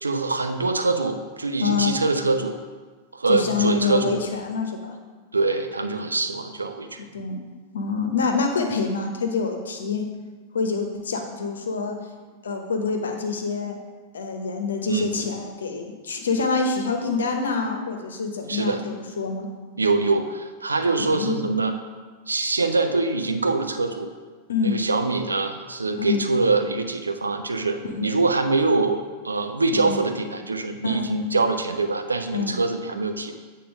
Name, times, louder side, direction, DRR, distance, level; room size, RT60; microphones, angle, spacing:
voice 1, 0.0-2.6 3.1-4.2 5.3-7.0 14.9-15.1 18.5-18.8 19.8-21.7 22.3-24.1 24.6-33.4, right 3 dB, 80° right, 7 dB, 0.6 m, -24 dB
voice 2, 1.6-2.0 3.3-4.9 7.1-7.4 7.7-10.1 10.5-12.0 12.4-13.8 14.1-19.5 21.0-21.5 24.5-24.8 26.0-26.2 27.8-28.1 29.7-30.0 30.8-31.1 32.3-32.6, left 5 dB, 70° left, 4 dB, 0.9 m, -26 dB
8.6 x 3.8 x 5.3 m, 1.4 s
figure-of-eight pair, 90°, 0 cm